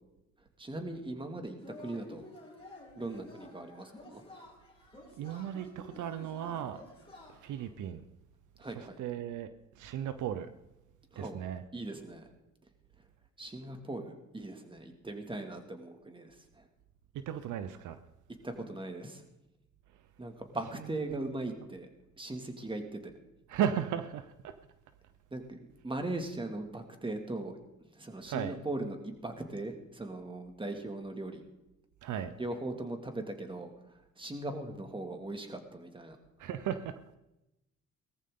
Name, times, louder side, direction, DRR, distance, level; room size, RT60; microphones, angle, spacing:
voice 1, 0.6-2.2 3.0-4.2 8.6-9.0 11.1-11.4 11.7-12.3 13.4-16.6 18.4-19.2 20.2-21.9 22.2-23.0 25.3-25.6 25.8-27.5 27.9-31.4 32.4-36.2, right 2 dB, 15° right, 2.3 m, -39 dB
Yell / Cheering, 1.6-7.7, left 1 dB, 20° left, 3.7 m, -52 dB
voice 2, 5.2-6.8 7.4-8.0 8.7-9.5 9.7-10.5 11.2-11.6 17.1-18.0 20.7-21.2 23.5-24.5 28.3-28.5 32.0-32.3 36.4-37.0, right 9 dB, 80° right, 0.8 m, -36 dB
18.5 x 14.0 x 3.8 m
cardioid pair, 90°, 30 cm